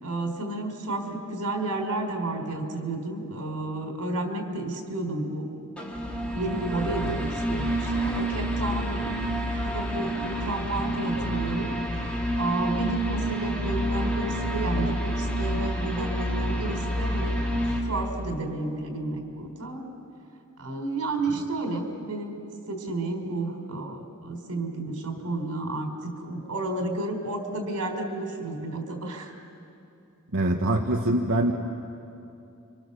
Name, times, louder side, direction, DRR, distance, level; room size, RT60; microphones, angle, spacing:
voice 1, 0.0-5.5 6.3-9.2 9.6-17.4 17.9-19.8 20.6-22.4 22.7-29.3, right 2 dB, 90° right, 4 dB, 4.0 m, -31 dB
sound 1, 5.8-17.8, equal, 5° left, 3.1 m, -28 dB
voice 2, 30.3-31.5, right 1 dB, 65° right, 1 dB, 1.3 m, -23 dB
30.0 x 25.5 x 6.9 m, 2.6 s
head